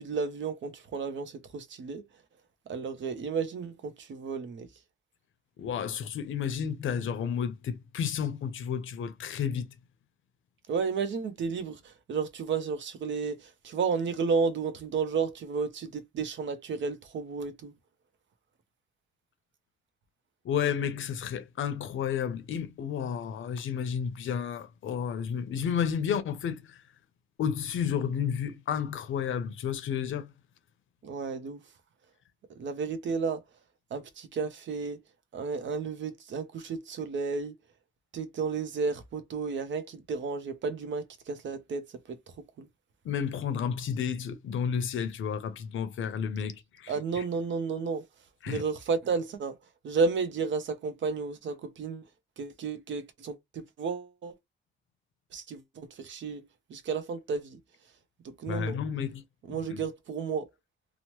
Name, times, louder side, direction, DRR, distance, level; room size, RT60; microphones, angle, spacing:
voice 1, 0.0-2.0 2.7-4.7 10.7-17.7 31.0-31.6 32.6-33.4 33.9-35.0 35.3-37.5 38.1-42.2 42.6-42.7 46.9-48.0 48.5-49.6 49.8-52.0 52.4-54.3 55.3-56.4 56.7-57.6 58.2-58.8 59.5-60.5, right 5 dB, 65° right, 0.7 m, -32 dB
voice 2, 5.6-9.7 20.4-26.6 27.4-30.3 43.0-46.9 48.4-48.6 58.5-59.2 59.7-59.8, left 7 dB, 75° left, 0.7 m, -31 dB
2.9 x 2.0 x 3.0 m
cardioid pair, 100°, 21 cm